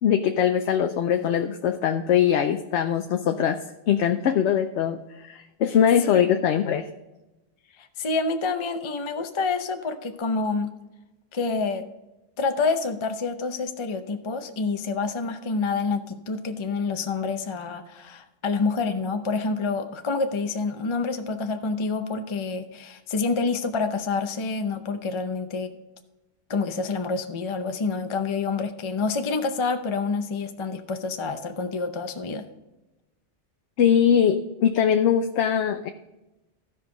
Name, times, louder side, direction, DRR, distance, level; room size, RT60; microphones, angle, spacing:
voice 1, 0.0-3.6 3.9-6.9 33.8-35.9, left 8 dB, 70° left, 7 dB, 0.9 m, -22 dB
voice 2, 7.8-10.7 11.3-11.8 12.4-25.7 26.5-32.4, left 4 dB, 35° left, 7 dB, 0.6 m, -27 dB
15.5 x 5.4 x 3.8 m, 1.0 s
omnidirectional pair, 1.2 m